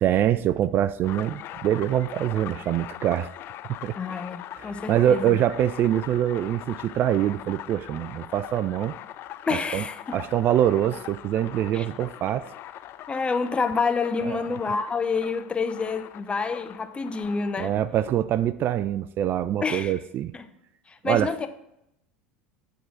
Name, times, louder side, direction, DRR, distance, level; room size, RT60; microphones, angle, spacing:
voice 1, 0.0-3.3 3.8-4.0 4.6-8.9 9.5-9.9 10.1-12.5 14.2-14.4 17.6-20.3 21.0-21.3, right 11 dB, 45° right, 0.3 m, -24 dB
sound 1, 1.0-17.5, left 12 dB, 50° left, 0.5 m, -42 dB
voice 2, 4.0-5.4 9.5-10.2 11.7-11.9 13.1-17.7 19.6-19.9 20.3-20.4 20.9-21.5, left 4 dB, 20° left, 0.8 m, -28 dB
9.3 x 3.9 x 6.3 m
hypercardioid pair, 80°, 5 cm